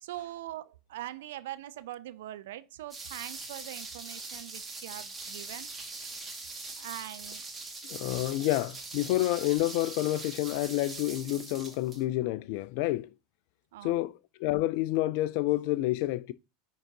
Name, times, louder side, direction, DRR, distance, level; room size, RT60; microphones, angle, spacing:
voice 1, 0.0-5.7 6.8-7.4 13.7-13.9, right 14 dB, 70° right, 0.4 m, -42 dB
sound 1, 2.9-12.0, right 3 dB, 20° right, 1.8 m, -42 dB
voice 2, 7.9-13.1 13.8-16.3, left 16 dB, 60° left, 0.4 m, -29 dB
10.0 x 3.8 x 2.7 m
hypercardioid pair, 85°, 0 cm